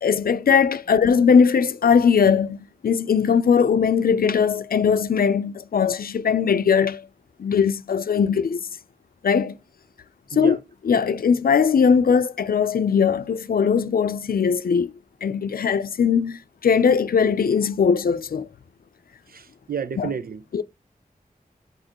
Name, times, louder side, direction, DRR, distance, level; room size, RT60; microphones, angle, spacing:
voice 1, 0.0-7.1 7.4-8.7 9.2-9.6 10.4-10.6 10.9-14.9 15.2-18.5 20.0-20.1 20.5-20.6, left 6 dB, 85° left, 0.5 m, -20 dB
voice 2, 19.3-20.4, right 7 dB, 85° right, 0.6 m, -31 dB
6.5 x 4.9 x 2.9 m
wide cardioid pair, 85°, 15 cm